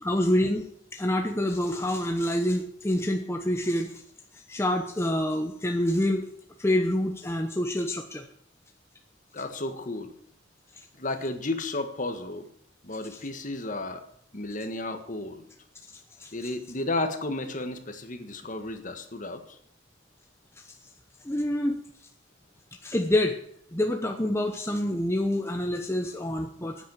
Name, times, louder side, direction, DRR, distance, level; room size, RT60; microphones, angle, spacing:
voice 1, 0.0-0.6 0.9-3.9 4.5-6.2 6.6-8.2 16.2-16.3 21.2-21.8 22.8-23.4 23.7-26.8, left 1 dB, 15° left, 3 dB, 0.9 m, -26 dB
voice 2, 9.3-10.1 11.0-12.5 12.8-14.0 14.3-15.5 16.3-19.6, left 2 dB, 40° left, 7 dB, 1.6 m, -33 dB
10.5 x 9.2 x 8.9 m, 0.66 s
head